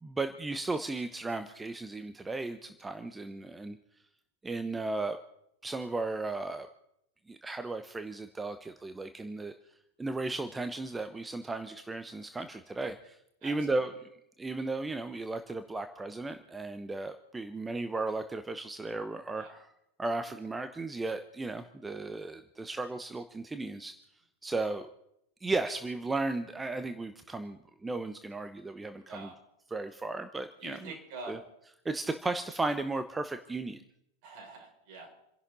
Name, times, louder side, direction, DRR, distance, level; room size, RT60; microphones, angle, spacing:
voice 1, 0.0-3.8 4.4-5.2 5.6-6.7 7.3-9.5 10.0-14.1 14.4-19.7 20.0-23.9 24.4-24.9 25.4-29.3 29.7-30.9 31.3-31.4 31.8-33.8, right 3 dB, 10° right, 9 dB, 0.9 m, -35 dB
voice 2, 13.4-13.9 19.4-19.6 29.1-29.4 30.6-31.4 34.2-35.1, right 3 dB, 45° right, 0 dB, 6.2 m, -45 dB
29.0 x 11.5 x 4.1 m, 0.80 s
figure-of-eight pair, 90°, 0 cm